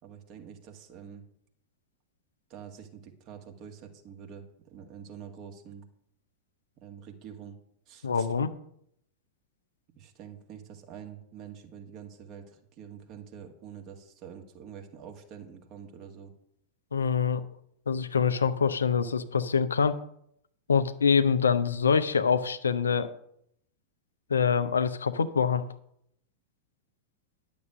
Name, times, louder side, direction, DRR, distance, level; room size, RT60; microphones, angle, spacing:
voice 1, 0.0-1.3 2.5-5.9 6.8-7.6 7.9-8.3 10.0-16.3, right 8 dB, 40° right, 4 dB, 2.0 m, -46 dB
voice 2, 8.0-8.5 16.9-17.4 17.9-20.0 20.7-23.1 24.3-25.6, left 6 dB, 70° left, 11 dB, 0.7 m, -25 dB
11.0 x 7.0 x 6.4 m, 0.73 s
figure-of-eight pair, 90°, 0 cm